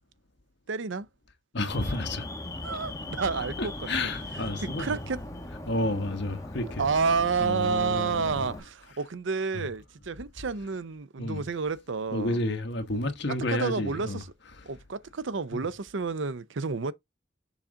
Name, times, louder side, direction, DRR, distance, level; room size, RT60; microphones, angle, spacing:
voice 1, 0.7-1.1 2.6-3.7 4.8-5.2 6.8-12.4 13.5-14.2 14.7-16.9, right 5 dB, 70° right, 0.6 m, -30 dB
voice 2, 1.5-2.3 3.6-5.0 5.7-6.8 7.4-8.5 9.5-9.7 11.2-11.5 12.1-14.2 14.6-14.7 15.5-15.7, left 1 dB, 60° left, 1.4 m, -31 dB
Alarm, 1.7-8.6, left 1 dB, 15° left, 1.1 m, -39 dB
7.1 x 3.9 x 3.6 m
head